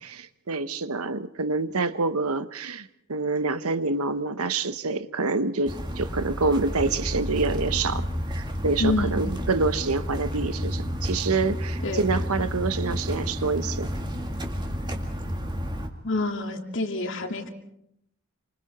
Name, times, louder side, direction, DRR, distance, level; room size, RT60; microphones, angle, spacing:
voice 1, 0.0-13.9, right 3 dB, 75° right, 11 dB, 1.1 m, -27 dB
sound 1, 5.7-15.9, equal, 20° right, 2.2 m, -30 dB
voice 2, 8.8-9.2 11.8-12.1 16.0-17.5, left 2 dB, 55° left, 4 dB, 2.5 m, -27 dB
28.5 x 26.0 x 4.3 m, 0.75 s
head